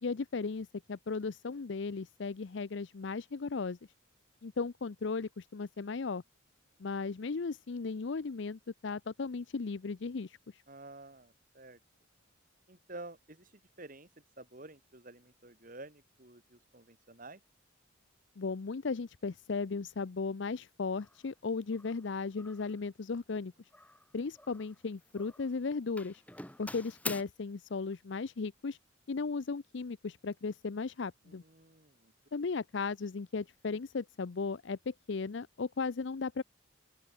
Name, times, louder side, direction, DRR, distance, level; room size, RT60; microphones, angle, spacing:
voice 1, 0.0-3.8 4.4-6.2 6.8-10.4 18.4-23.5 24.1-26.2 26.6-28.8 29.1-31.4 32.3-36.4, left 4 dB, 60° left, 0.5 m, -36 dB
voice 2, 10.7-11.8 12.7-13.5 13.8-14.1 14.4-17.4 31.4-32.1, right 2 dB, 40° right, 3.1 m, -50 dB
Doorbell, 21.0-21.2 21.7-22.1 22.4-22.8 23.7-24.8 25.1-25.6 26.0-27.2, left 2 dB, 5° left, 2.5 m, -45 dB
open air
head